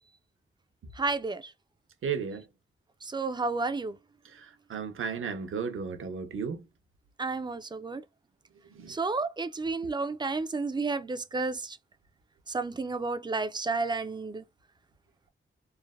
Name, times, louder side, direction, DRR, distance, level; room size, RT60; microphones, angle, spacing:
voice 1, 1.0-1.5 3.0-4.0 7.2-8.0 8.9-11.8 12.5-14.4, right 3 dB, 20° right, 0.3 m, -31 dB
voice 2, 2.0-2.4 4.3-6.7 8.8-8.9, right 6 dB, 75° right, 0.6 m, -34 dB
3.2 x 2.0 x 2.2 m
wide cardioid pair, 115°, 21 cm